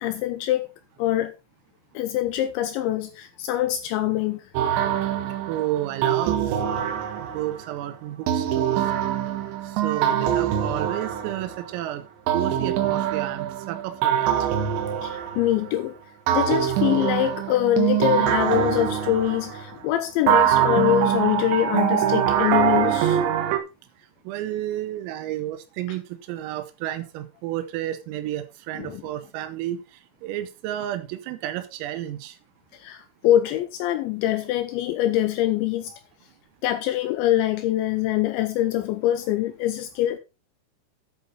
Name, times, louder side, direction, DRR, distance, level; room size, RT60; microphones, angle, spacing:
voice 1, 0.0-0.7 1.0-1.3 2.0-4.4 15.0-15.9 16.3-23.2 28.8-29.0 32.7-36.0 36.6-40.2, left 13 dB, 85° left, 2.7 m, -24 dB
sound 1, 4.6-7.6 8.3-11.8 12.3-15.8 16.3-19.7 20.3-23.6, right 10 dB, 70° right, 3.2 m, -24 dB
voice 2, 5.5-6.6 7.2-8.9 9.7-12.0 12.3-14.3 24.3-26.0 26.3-32.4, right 13 dB, 90° right, 3.7 m, -31 dB
10.0 x 8.3 x 4.1 m
omnidirectional pair, 5.9 m